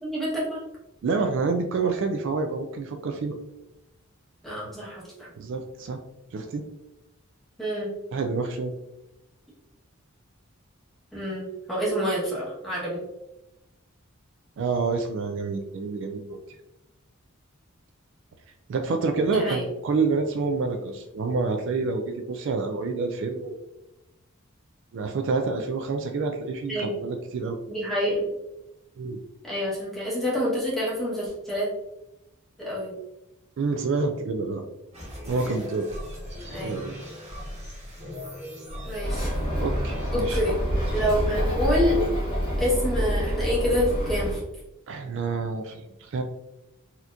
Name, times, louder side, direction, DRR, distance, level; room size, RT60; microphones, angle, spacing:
voice 1, 0.0-0.6 4.4-5.3 7.6-7.9 11.1-13.0 19.3-19.6 26.7-27.0 27.7-28.3 29.4-31.7 32.6-32.9 36.5-36.8 38.8-39.3 40.1-40.6 40.9-42.0 42.6-44.4, equal, ahead, -7 dB, 1.2 m, -27 dB
voice 2, 1.0-3.4 5.4-6.0 6.3-6.6 8.1-8.7 14.6-16.4 18.7-23.6 24.9-27.6 29.0-29.2 33.6-34.6 35.3-35.9 36.5-37.0 39.6-40.4 44.9-46.2, right 4 dB, 60° right, 5 dB, 0.3 m, -28 dB
sound 1, 34.9-43.1, left 1 dB, 30° right, 1.2 m, -39 dB
Bird, 39.0-44.4, equal, 25° left, 1.1 m, -27 dB
4.2 x 2.8 x 2.5 m, 0.93 s
head